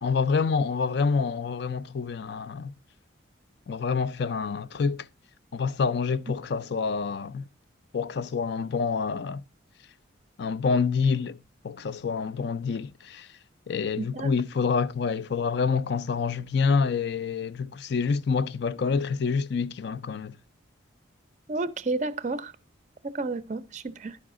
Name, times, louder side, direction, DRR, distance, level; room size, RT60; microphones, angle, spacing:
voice 1, 0.0-2.7 3.7-5.1 5.5-7.4 7.9-9.4 10.4-11.4 11.6-13.3 13.7-20.3, left 5 dB, 55° left, 0.4 m, -27 dB
voice 2, 14.0-14.3 21.5-22.5 23.0-24.2, right 3 dB, 35° right, 0.5 m, -31 dB
11.0 x 5.6 x 3.6 m
head